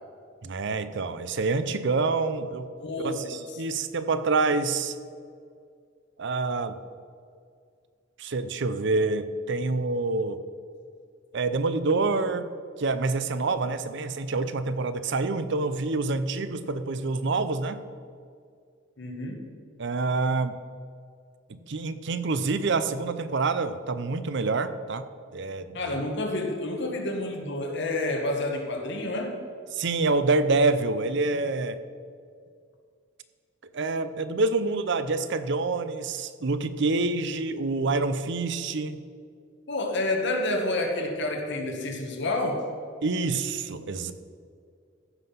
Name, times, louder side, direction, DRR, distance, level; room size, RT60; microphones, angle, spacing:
voice 1, 0.4-2.7 3.0-4.9 6.2-6.8 8.2-10.4 11.3-12.5 12.8-17.8 19.8-20.6 21.5-25.0 25.3-26.1 29.7-31.8 33.7-39.0 43.0-44.1, right 3 dB, 65° right, 12 dB, 0.6 m, -27 dB
voice 2, 2.8-3.6 19.0-19.5 25.7-29.4 39.7-42.7, left 2 dB, 65° left, 2 dB, 1.7 m, -29 dB
14.5 x 5.8 x 5.7 m, 2.2 s
head